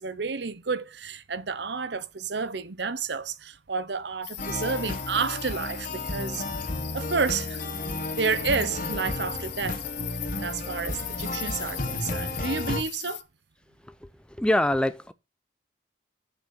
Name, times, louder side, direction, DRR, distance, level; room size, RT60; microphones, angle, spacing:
voice 1, 0.0-6.5 6.9-7.6 8.1-9.8 10.4-13.2, right 5 dB, 70° right, 0.8 m, -30 dB
sound 1, 4.2-13.2, left 14 dB, 60° left, 0.9 m, -38 dB
sound 2, 4.4-12.8, left 1 dB, 45° left, 1.4 m, -33 dB
voice 2, 13.8-15.1, left 1 dB, 5° left, 0.6 m, -25 dB
7.1 x 6.8 x 6.6 m
head